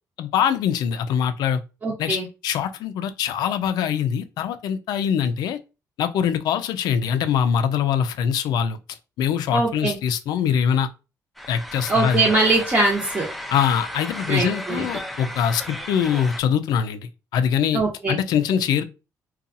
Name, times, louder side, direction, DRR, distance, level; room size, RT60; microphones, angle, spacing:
voice 1, 0.2-1.6 2.0-5.6 6.0-10.9 11.5-12.2 13.5-17.8 18.1-18.8, left 8 dB, 80° left, 0.3 m, -23 dB
voice 2, 1.8-2.3 9.5-10.0 11.9-13.3 14.3-14.8 17.7-18.2, right 2 dB, 30° right, 0.8 m, -22 dB
sound 1, 11.4-16.4, equal, ahead, 0.4 m, -34 dB
2.7 x 2.3 x 2.5 m
cardioid pair, 95°, 7 cm